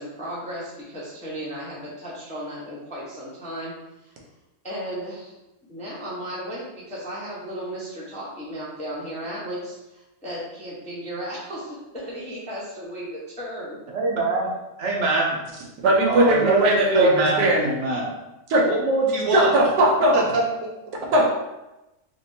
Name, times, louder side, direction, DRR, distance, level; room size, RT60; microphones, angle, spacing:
voice 1, 0.0-3.7 4.0-4.1 4.6-5.3 5.7-13.8, equal, 10° left, -7 dB, 0.5 m, -35 dB
voice 2, 13.9-14.5 14.8-15.4 16.1-16.6 16.9-18.1 18.7-19.5 20.1-20.4, right 3 dB, 55° right, -2 dB, 0.9 m, -23 dB
voice 3, 15.8-17.7 18.5-18.6 19.3-20.2 21.1-21.2, right 1 dB, 85° right, -1 dB, 1.4 m, -18 dB
4.1 x 2.6 x 2.7 m, 0.97 s
omnidirectional pair, 1.7 m